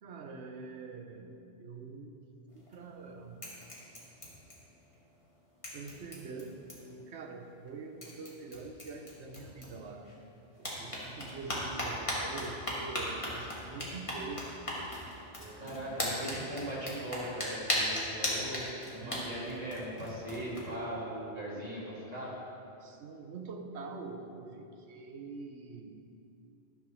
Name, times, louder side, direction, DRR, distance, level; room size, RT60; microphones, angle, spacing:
voice 1, 0.0-2.2 2.5-3.6 5.7-10.1 10.6-14.5 15.4-16.1 18.9-19.4 22.8-26.1, right 4 dB, 75° right, 4 dB, 1.1 m, -45 dB
Claws animal (foley), 2.5-3.1 3.4-4.9 5.2-5.3 5.6-7.0 7.7-7.8 8.0-10.2 10.5-20.7, left 1 dB, 30° left, 1.7 m, -37 dB
voice 2, 15.6-22.4, right 1 dB, 35° right, -7 dB, 2.4 m, -39 dB
11.5 x 4.6 x 6.0 m, 2.8 s
omnidirectional pair, 1.1 m